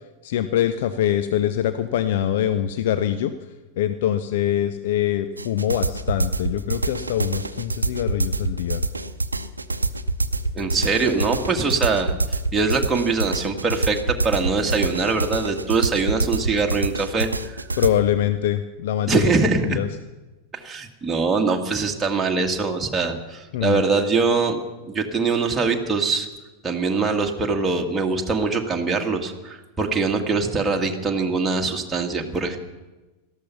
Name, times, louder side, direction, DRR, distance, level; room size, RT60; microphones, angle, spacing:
voice 1, 0.2-3.3 3.8-8.8 17.8-19.3 19.6-20.0 23.5-23.8, left 11 dB, 55° left, 11 dB, 0.7 m, -23 dB
sound 1, 5.4-17.9, right 3 dB, 80° right, 0.7 m, -26 dB
voice 2, 10.5-17.6 19.1-19.8 20.5-24.6 24.9-26.3 26.6-32.6, right 4 dB, 15° right, 1 dB, 1.8 m, -23 dB
18.0 x 13.5 x 5.8 m, 1.1 s
figure-of-eight pair, 90°, 0 cm